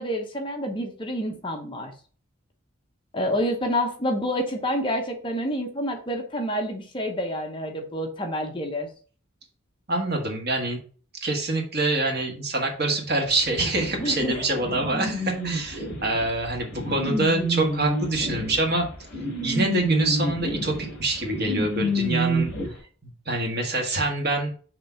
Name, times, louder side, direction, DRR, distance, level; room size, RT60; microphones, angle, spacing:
voice 1, 0.0-1.9 3.1-8.9 14.0-14.5, equal, 25° left, 3 dB, 0.9 m, -28 dB
voice 2, 9.9-10.8 11.2-18.9 19.4-22.6 23.0-24.5, right 2 dB, 50° right, 2 dB, 1.6 m, -26 dB
sound 1, 13.6-22.7, right 1 dB, 45° left, 3.0 m, -29 dB
6.1 x 3.3 x 5.6 m, 0.41 s
head